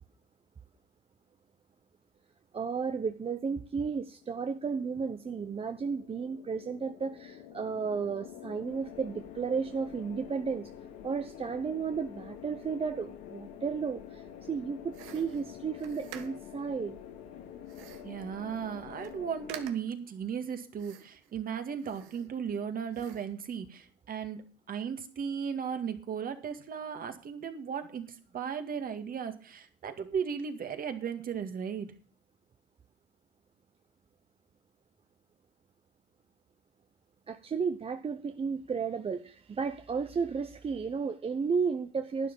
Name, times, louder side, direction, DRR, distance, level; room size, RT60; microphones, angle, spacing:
voice 1, 2.5-10.7 11.0-17.0 37.3-42.3, right 5 dB, 30° right, 9 dB, 0.8 m, -33 dB
sound 1, 4.2-19.7, left 9 dB, 85° left, 2.2 m, -47 dB
sound 2, 14.9-16.6 17.7-18.2 18.6-18.7 18.9-19.2 19.5-20.0 20.8-21.3 21.7-22.6 22.9-23.4, right 11 dB, 85° right, 1.4 m, -49 dB
voice 2, 18.0-24.4 24.7-31.9, right 7 dB, 45° right, 8 dB, 2.0 m, -36 dB
11.5 x 9.7 x 5.5 m, 0.41 s
supercardioid pair, 90°, 20 cm